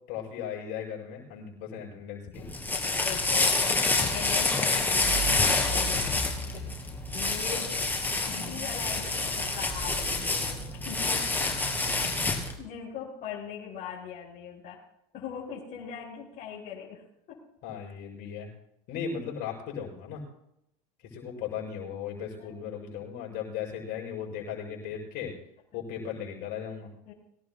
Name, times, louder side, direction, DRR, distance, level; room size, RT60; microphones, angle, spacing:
voice 1, 0.1-2.5 17.6-18.5 18.9-20.2 21.1-25.3 25.7-26.9, left 7 dB, 60° left, 0 dB, 6.8 m, -37 dB
sound 1, 2.3-12.6, left 3 dB, 10° left, 2.5 m, -27 dB
voice 2, 3.0-3.6 4.0-6.6 7.1-7.7 8.2-11.5 11.9-14.8 15.1-17.0 17.3-17.4 22.4-22.5 27.1-27.2, left 8 dB, 45° left, -6 dB, 5.7 m, -41 dB
24.5 x 17.0 x 2.2 m, 0.80 s
supercardioid pair, 120°, 19 cm